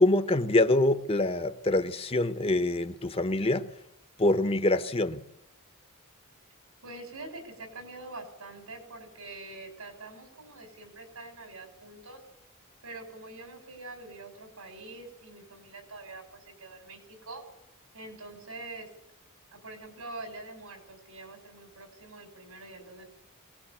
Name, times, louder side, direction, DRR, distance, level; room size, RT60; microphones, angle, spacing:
voice 1, 0.0-3.7 4.2-5.2, left 2 dB, 25° left, 1.1 m, -25 dB
voice 2, 6.8-12.2 12.8-17.4 17.9-18.9 19.5-23.1, right 2 dB, 75° right, 6.0 m, -45 dB
22.5 x 19.5 x 8.5 m
head